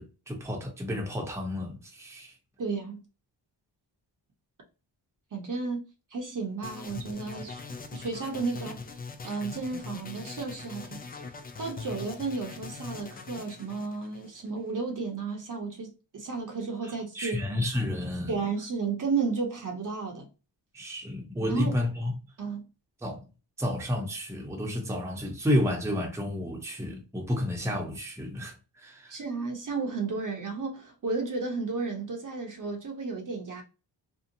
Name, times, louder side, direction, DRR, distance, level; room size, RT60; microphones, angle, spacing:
voice 1, 0.0-2.3 16.8-18.3 20.7-22.1 23.0-23.2 23.6-29.2, left 1 dB, 5° right, 0.8 m, -31 dB
voice 2, 2.6-3.0 5.3-7.7 7.9-8.8 9.2-11.0 11.6-17.4 18.3-20.3 21.5-21.7 22.4-22.6 29.1-33.6, right 4 dB, 45° right, 0.8 m, -33 dB
sound 1, 6.6-14.7, left 4 dB, 20° left, 0.3 m, -42 dB
2.7 x 2.1 x 2.6 m
cardioid pair, 80°, 45 cm